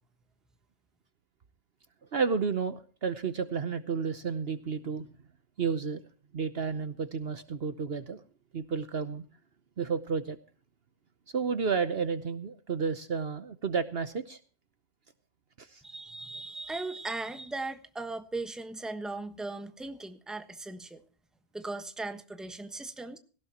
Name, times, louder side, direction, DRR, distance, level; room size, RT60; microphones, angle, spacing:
voice 1, 2.1-5.1 5.6-6.0 6.3-8.2 8.5-9.2 9.8-10.4 11.3-14.4 15.6-15.8, right 5 dB, 55° right, 12 dB, 1.1 m, -31 dB
voice 2, 15.8-21.0 21.5-23.2, right 2 dB, ahead, 8 dB, 1.2 m, -38 dB
18.0 x 16.5 x 2.9 m, 0.39 s
omnidirectional pair, 1.3 m